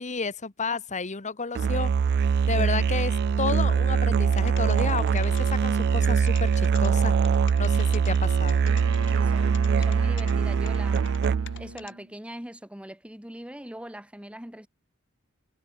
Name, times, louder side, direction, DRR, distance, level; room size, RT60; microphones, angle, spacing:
voice 1, 0.0-1.9 2.5-7.1 7.6-8.6, left 4 dB, 35° left, 1.4 m, -31 dB
Musical instrument, 1.5-11.7, right 6 dB, 50° right, 0.3 m, -23 dB
sound 1, 4.3-5.5 5.9-6.9 7.2-9.2 9.5-10.3 10.7-11.9, left 9 dB, 60° left, 5.1 m, -45 dB
Wind instrument woodwind instrument, 8.6-12.1, right 3 dB, 70° right, 3.8 m, -39 dB
voice 2, 9.1-11.1 11.5-14.7, right 1 dB, 5° right, 1.7 m, -42 dB
head